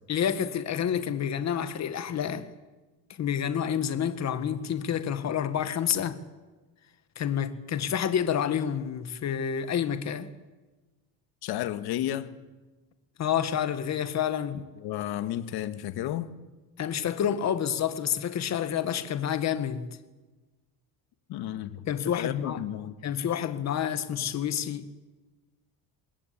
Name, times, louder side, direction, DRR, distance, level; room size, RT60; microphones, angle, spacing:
voice 1, 0.1-2.5 3.2-6.2 7.1-10.3 13.2-14.6 16.8-19.9 21.8-22.6 23.0-24.9, left 9 dB, 45° left, 1.8 m, -29 dB
voice 2, 11.4-12.4 14.8-16.3 21.3-21.8 22.2-22.9, left 12 dB, 75° left, 1.8 m, -32 dB
26.0 x 21.0 x 8.6 m
cardioid pair, 155°, 39 cm